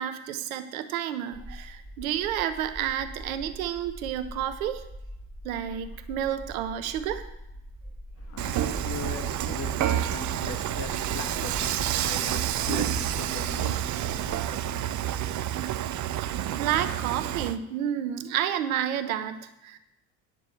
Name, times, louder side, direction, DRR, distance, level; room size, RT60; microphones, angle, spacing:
voice 1, 0.0-4.8 5.4-7.2 16.2-19.8, right 10 dB, 75° right, 1.0 m, -30 dB
sound 1, 1.3-14.4, equal, 15° left, 4.4 m, -43 dB
voice 2, 8.2-16.7, left 5 dB, 35° left, 1.8 m, -40 dB
Dishes pots and pans / Frying (food), 8.4-17.6, right 12 dB, 45° right, 0.7 m, -29 dB
9.5 x 6.4 x 8.3 m
hypercardioid pair, 60°, 41 cm